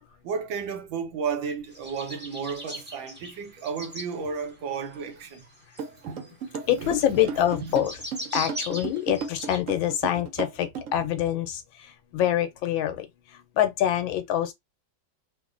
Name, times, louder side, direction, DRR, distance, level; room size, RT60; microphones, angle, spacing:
voice 1, 0.2-5.5 5.8-6.3 6.8-7.0 7.3-7.8, right 6 dB, 80° right, 1.5 m, -33 dB
sound 1, 1.7-4.1 4.8-9.6, equal, 15° right, 0.4 m, -39 dB
sound 2, 5.8-11.1, right 5 dB, 60° right, 0.8 m, -34 dB
voice 2, 6.7-7.9 8.3-13.1 13.3-14.5, left 11 dB, 85° left, 1.4 m, -25 dB
3.6 x 2.1 x 2.5 m
omnidirectional pair, 2.1 m